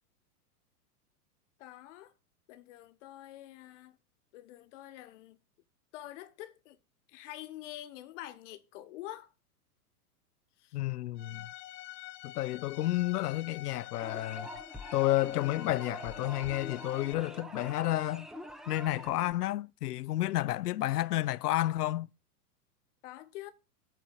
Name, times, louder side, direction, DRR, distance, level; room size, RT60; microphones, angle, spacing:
voice 1, 1.6-2.1 2.5-4.0 4.3-5.4 5.9-6.8 7.1-9.3 10.6-10.8 23.0-23.5, left 14 dB, 50° left, 1.2 m, -46 dB
voice 2, 10.7-11.5 12.2-14.5 14.9-18.3 18.7-22.1, left 15 dB, 80° left, 0.5 m, -31 dB
Bowed string instrument, 11.2-17.1, left 16 dB, 30° left, 0.6 m, -47 dB
sound 1, 14.0-19.3, equal, ahead, 0.8 m, -46 dB
8.9 x 4.4 x 6.6 m
hypercardioid pair, 115°, 46 cm